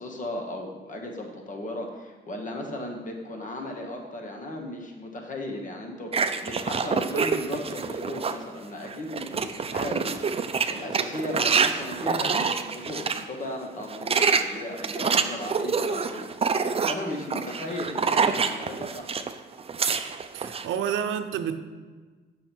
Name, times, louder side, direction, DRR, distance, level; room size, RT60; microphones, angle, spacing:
voice 1, 0.0-10.2 10.7-16.3 16.9-19.3, left 1 dB, 40° left, 2 dB, 1.5 m, -36 dB
sound 1, 6.1-8.4 8.8-13.2 13.8-19.3 19.6-20.7, right 5 dB, 30° right, 0.5 m, -26 dB
voice 2, 20.3-21.6, right 8 dB, 80° right, 8 dB, 0.7 m, -29 dB
8.0 x 6.3 x 4.5 m, 1.4 s
cardioid pair, 90°, 20 cm